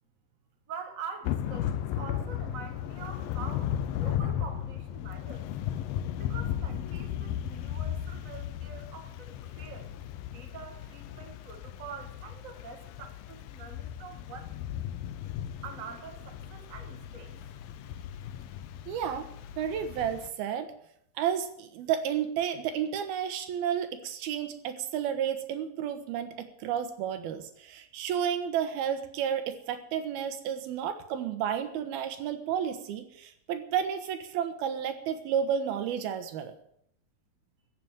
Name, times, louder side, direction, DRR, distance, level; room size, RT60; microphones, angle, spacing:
voice 1, 0.7-5.5 6.2-9.9 10.3-14.5 15.6-17.3, right 6 dB, 30° right, 4 dB, 1.6 m, -45 dB
Thunder / Rain, 1.2-20.3, left 10 dB, 75° left, 2.4 m, -36 dB
voice 2, 18.9-19.3 19.6-20.7 21.2-36.5, right 8 dB, 80° right, 9 dB, 3.1 m, -31 dB
15.5 x 7.4 x 9.3 m, 0.70 s
omnidirectional pair, 4.4 m